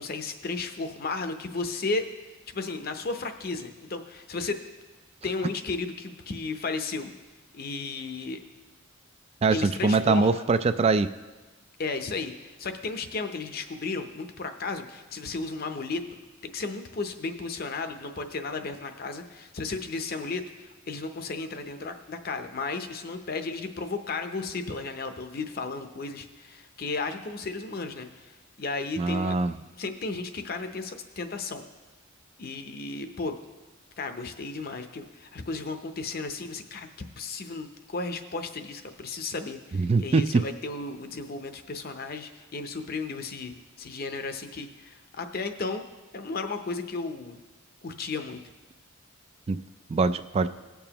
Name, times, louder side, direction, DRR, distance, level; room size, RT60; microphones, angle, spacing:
voice 1, 0.0-2.0 2.5-4.6 5.2-7.1 7.5-8.4 9.5-10.4 11.8-29.4 29.8-31.7 32.4-33.3 34.0-36.9 37.2-45.8 46.1-47.4 47.8-48.4, left 3 dB, 50° left, 7 dB, 0.7 m, -34 dB
voice 2, 9.4-11.1 29.0-29.5 39.7-40.4 49.5-49.6 49.9-50.5, right 4 dB, 30° right, 12 dB, 0.3 m, -23 dB
17.5 x 7.0 x 2.9 m, 1.3 s
head